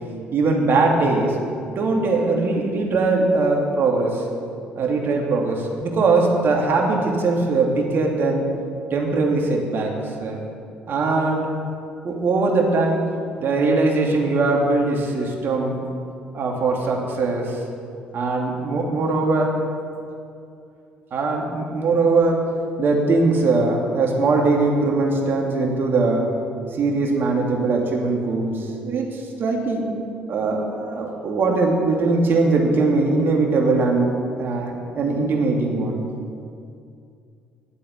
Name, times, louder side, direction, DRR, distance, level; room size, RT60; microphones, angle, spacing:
voice 1, 0.3-1.4 1.6-4.2 4.8-8.4 8.9-9.9 10.2-10.4 10.9-11.5 12.0-13.1 13.4-15.8 16.3-17.6 18.1-19.6 21.1-22.5 22.8-26.3 26.8-29.9 30.3-36.0, right 3 dB, 55° right, 0 dB, 2.9 m, -21 dB
11.5 x 8.5 x 9.7 m, 2.5 s
hypercardioid pair, 55°, 5 cm